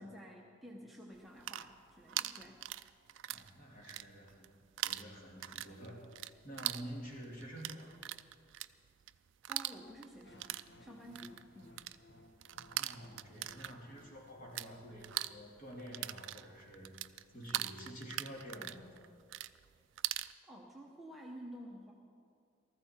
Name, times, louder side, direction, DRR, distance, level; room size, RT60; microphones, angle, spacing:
voice 1, 0.0-2.6 9.5-11.8 20.4-21.9, equal, ahead, -3 dB, 0.9 m, -51 dB
sound 1, 1.2-3.5 3.8-4.5 4.8-14.7 15.0-20.3, right 14 dB, 60° right, 0.3 m, -41 dB
voice 2, 3.3-4.6 4.8-6.0 6.4-8.0 12.7-16.9 17.3-18.9, equal, 40° left, -2 dB, 2.5 m, -49 dB
sound 2, 10.2-16.3, left 1 dB, 55° left, 0.9 m, -62 dB
18.5 x 14.0 x 4.4 m, 2.3 s
head